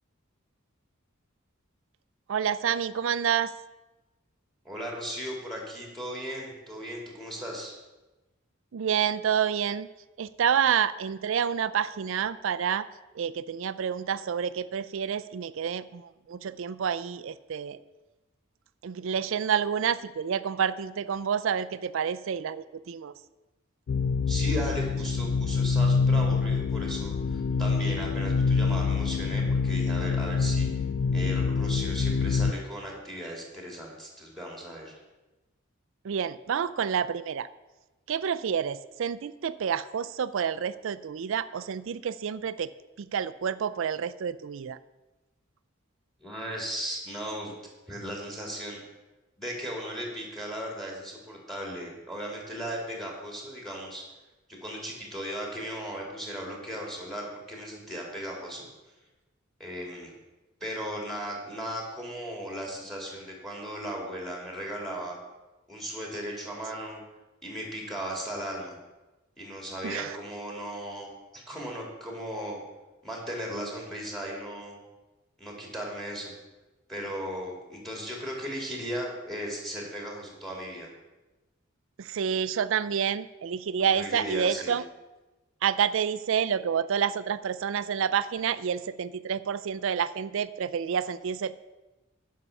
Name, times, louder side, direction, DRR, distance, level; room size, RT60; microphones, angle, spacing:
voice 1, 2.3-3.5 8.7-9.9 10.2-12.9 13.2-17.8 18.8-23.1 36.0-37.5 38.1-42.7 43.0-44.8 69.8-70.2 82.0-84.8 85.6-91.5, right 7 dB, 70° right, 15 dB, 0.4 m, -28 dB
voice 2, 4.6-7.7 24.3-30.7 31.1-35.0 46.2-47.5 47.9-48.8 49.4-54.0 54.5-58.7 59.6-60.1 60.6-65.2 65.7-67.0 67.4-68.8 69.4-71.1 71.3-72.6 73.0-74.8 75.4-76.3 76.9-80.9 83.9-84.7, equal, ahead, -1 dB, 2.4 m, -36 dB
sound 1, 23.9-32.5, left 5 dB, 60° left, 0.4 m, -26 dB
10.0 x 5.6 x 6.9 m, 1.1 s
head